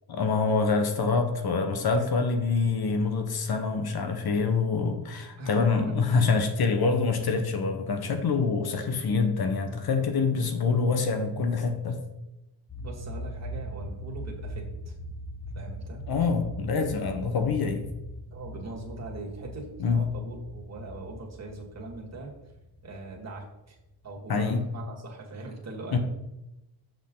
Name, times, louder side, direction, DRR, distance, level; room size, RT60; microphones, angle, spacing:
voice 1, 0.1-12.0 16.1-17.9 19.8-20.1 24.3-24.7 25.9-26.0, left 4 dB, 50° left, 6 dB, 1.1 m, -26 dB
voice 2, 5.4-6.0 12.8-14.9 15.5-16.0 18.3-22.3 22.8-23.8 24.0-26.0, right 2 dB, 35° right, -1 dB, 2.1 m, -40 dB
sound 1, 12.7-24.0, equal, 10° left, 2.2 m, -40 dB
6.4 x 6.4 x 3.9 m, 0.96 s
cardioid pair, 90°, 46 cm